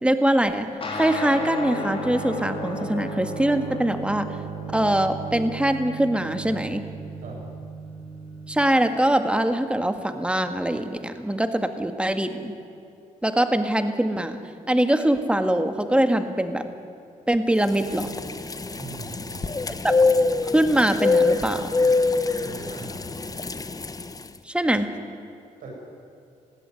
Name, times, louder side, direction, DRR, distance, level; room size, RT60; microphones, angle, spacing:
voice 1, 0.0-0.7 0.9-4.3 4.7-6.8 8.5-12.5 13.2-14.4 14.7-16.7 17.3-18.1 20.5-21.7 24.5-24.9, right 1 dB, 10° right, 8 dB, 1.8 m, -23 dB
sound 1, 0.8-8.6, right 1 dB, 40° left, 4.0 m, -34 dB
sound 2, 17.6-24.3, left 3 dB, 25° left, 1.1 m, -24 dB
voice 2, 18.7-19.7 22.3-23.0 25.6-25.7, right 3 dB, 80° right, -1 dB, 7.5 m, -40 dB
20.0 x 15.5 x 9.8 m, 2.6 s
cardioid pair, 85°, 14 cm